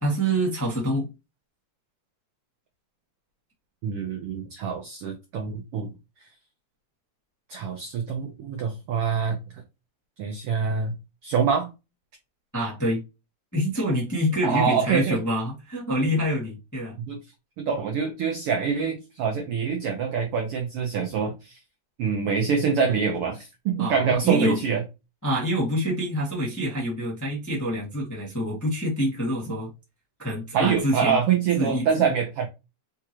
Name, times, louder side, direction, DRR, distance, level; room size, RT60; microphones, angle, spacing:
voice 1, 0.0-1.1 12.5-13.0 13.5-16.9 23.8-24.6 25.2-29.7 30.2-31.2 31.6-31.8, equal, 15° left, 0.6 m, -26 dB
voice 2, 3.8-5.9 7.5-9.6 10.2-10.9 11.2-11.7 14.4-15.2 17.1-17.2 17.6-21.6 22.0-24.8 30.5-32.5, right 6 dB, 90° right, 1.2 m, -25 dB
4.6 x 3.6 x 2.9 m
omnidirectional pair, 3.6 m